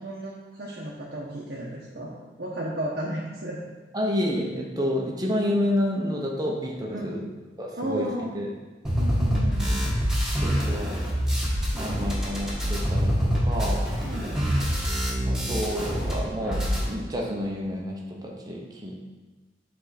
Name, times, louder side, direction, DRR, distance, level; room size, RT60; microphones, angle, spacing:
voice 1, 0.0-2.1 2.4-3.6 6.9-7.1 7.8-8.3 9.0-9.8 14.0-14.4, right 1 dB, 65° right, -6 dB, 1.0 m, -33 dB
voice 2, 3.9-7.3 7.6-8.1 8.3-8.5 10.4-11.0 11.7-13.9 15.2-19.0, equal, 20° right, -1 dB, 0.8 m, -29 dB
sound 1, 8.8-16.1 16.4-16.8, equal, 5° right, 1.4 m, -25 dB
8.0 x 3.5 x 4.1 m, 1.3 s
head